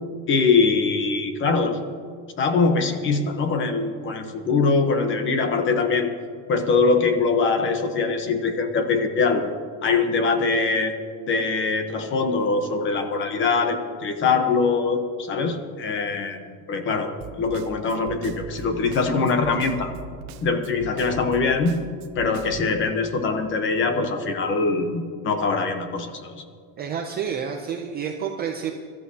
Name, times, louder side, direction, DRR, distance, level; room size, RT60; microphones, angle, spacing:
voice 1, 0.3-1.9 2.4-6.1 6.5-9.5 9.8-11.0 11.3-17.1 17.4-19.9 20.4-21.8 22.1-26.4, left 4 dB, 25° left, 7 dB, 0.9 m, -23 dB
Snare drum, 17.2-22.7, right 6 dB, 50° right, 0.9 m, -40 dB
voice 2, 26.8-28.7, right 7 dB, 25° right, 3 dB, 0.4 m, -29 dB
23.0 x 13.5 x 2.8 m, 2.1 s
cardioid pair, 175°, 45 cm